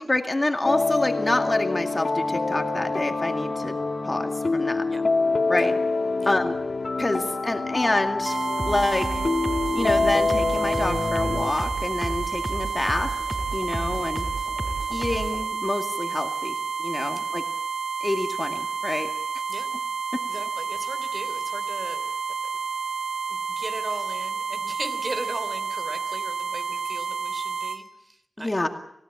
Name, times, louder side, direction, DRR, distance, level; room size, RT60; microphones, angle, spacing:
voice 1, 0.0-3.7 4.0-4.9 5.5-5.7 6.3-6.6 7.0-8.4 8.6-9.2 9.7-13.1 13.5-14.3 14.9-17.4 18.0-19.1 20.1-20.2 28.4-28.7, left 2 dB, 25° left, 4 dB, 2.2 m, -27 dB
sound 1, 0.6-11.5, left 3 dB, 45° left, 1.8 m, -26 dB
sound 2, 8.3-27.8, right 5 dB, 80° right, 2.0 m, -30 dB
sound 3, 8.6-15.4, right 1 dB, 10° right, 5.4 m, -33 dB
voice 2, 20.3-22.1 23.3-28.7, right 2 dB, 35° right, 10 dB, 3.2 m, -38 dB
28.5 x 16.5 x 8.8 m, 0.78 s
wide cardioid pair, 75°, 0 cm